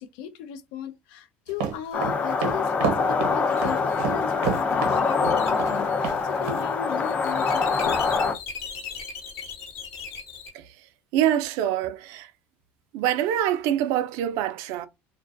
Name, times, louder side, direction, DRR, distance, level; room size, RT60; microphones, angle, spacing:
voice 1, 0.0-8.4, left 9 dB, 85° left, 0.4 m, -36 dB
sound 1, 1.5-5.8 6.0-6.2 6.5-6.6, right 7 dB, 90° right, 0.8 m, -29 dB
sound 2, 1.9-8.3, left 4 dB, 25° left, 0.4 m, -24 dB
sound 3, 3.5-10.5, left 6 dB, 55° left, 0.9 m, -39 dB
voice 2, 10.5-10.9 11.1-12.3 12.9-14.9, right 11 dB, 70° right, 0.3 m, -25 dB
2.3 x 2.2 x 2.5 m
supercardioid pair, 120°, 5 cm